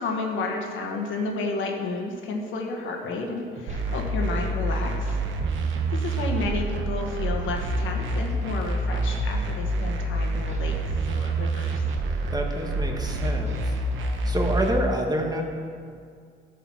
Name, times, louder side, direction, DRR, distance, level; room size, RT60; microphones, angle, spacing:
voice 1, 0.0-5.2 5.9-11.8, left 3 dB, 80° left, 1 dB, 1.4 m, -31 dB
sound 1, 3.0-4.4 4.7-5.9 6.1-7.1 7.4-9.2 9.5-9.8 10.1-12.0 12.2-12.6 12.9-14.0, right 2 dB, 35° right, 1.6 m, -43 dB
sound 2, 3.7-14.7, right 2 dB, 75° right, 1.1 m, -27 dB
voice 2, 12.3-13.6 14.2-15.4, right 1 dB, 20° right, 2 dB, 1.5 m, -27 dB
13.0 x 5.1 x 6.1 m, 2.2 s
cardioid pair, 90°, 20 cm